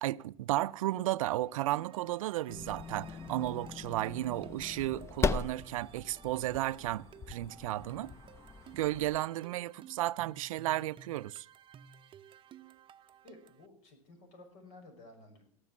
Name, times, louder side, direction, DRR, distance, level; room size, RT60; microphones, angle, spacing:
voice 1, 0.0-8.1 8.7-11.5, right 15 dB, 80° right, 0.5 m, -34 dB
sound 1, 1.4-13.7, right 9 dB, 30° right, 0.6 m, -55 dB
sound 2, 2.5-9.2, left 4 dB, 15° left, 0.6 m, -39 dB
voice 2, 13.2-15.4, left 2 dB, 70° left, 5.7 m, -54 dB
18.0 x 6.9 x 7.2 m
hypercardioid pair, 100°, 17 cm